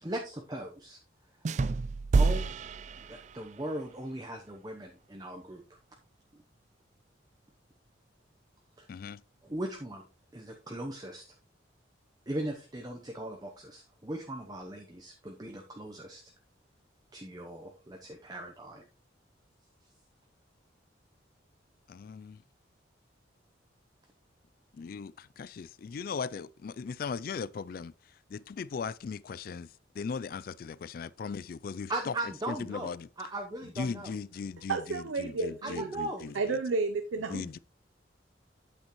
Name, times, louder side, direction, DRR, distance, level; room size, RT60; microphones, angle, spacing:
voice 1, 0.0-1.0 2.2-2.5 3.1-5.6 8.8-8.9 9.4-10.0 10.3-11.2 12.3-16.2 17.1-18.8 31.9-32.9 33.2-34.1 35.6-36.2, right 1 dB, 20° right, 0.8 m, -38 dB
sound 1, 1.4-3.6, right 4 dB, 35° right, 0.3 m, -28 dB
voice 2, 8.9-9.2 21.9-22.4 24.7-27.9 28.3-29.7 30.0-32.1 32.5-33.1 33.8-36.3 37.3-37.6, left 5 dB, 50° left, 0.3 m, -38 dB
voice 3, 34.7-35.9 36.2-37.6, right 3 dB, 85° right, 0.6 m, -32 dB
8.6 x 8.1 x 3.0 m
head